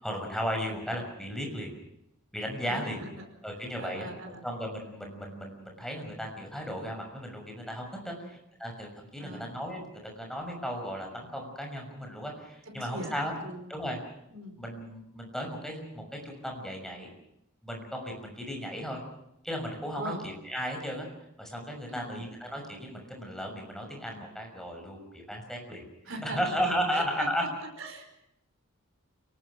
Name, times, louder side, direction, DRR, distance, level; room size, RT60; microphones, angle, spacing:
voice 1, 0.0-1.7 2.3-3.0 3.4-13.3 13.7-14.0 14.6-17.1 17.6-19.0 19.4-21.1 21.4-25.8 26.2-27.4, equal, ahead, 1 dB, 6.1 m, -35 dB
voice 2, 2.6-3.3 3.8-4.4 8.2-8.4 9.2-9.5 12.6-13.2 13.4-13.7 14.3-14.6 19.9-20.2 21.9-22.2 26.0-26.4 26.9-28.1, right 1 dB, 65° right, 4 dB, 5.3 m, -41 dB
29.5 x 18.5 x 6.2 m, 0.81 s
head